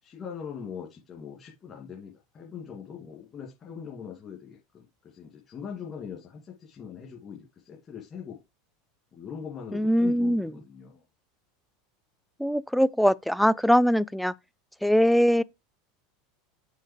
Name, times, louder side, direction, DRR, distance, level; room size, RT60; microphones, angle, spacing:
voice 1, 0.0-8.4 9.1-11.1, left 7 dB, 35° left, 2.2 m, -41 dB
voice 2, 9.7-10.5 12.4-14.3 14.8-15.4, equal, ahead, 0.4 m, -22 dB
6.4 x 4.0 x 5.0 m
hypercardioid pair, 80°, 0 cm